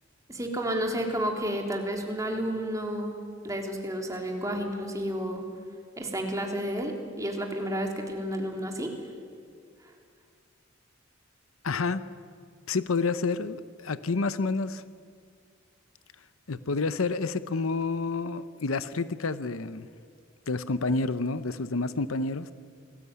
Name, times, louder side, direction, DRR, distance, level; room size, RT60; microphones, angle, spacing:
voice 1, 0.3-5.5 6.0-8.9, equal, 15° right, 2 dB, 3.4 m, -31 dB
voice 2, 11.6-12.0 12.7-14.8 16.5-19.9 20.5-22.5, left 3 dB, 80° left, 14 dB, 0.8 m, -29 dB
28.5 x 20.0 x 9.6 m, 2.1 s
head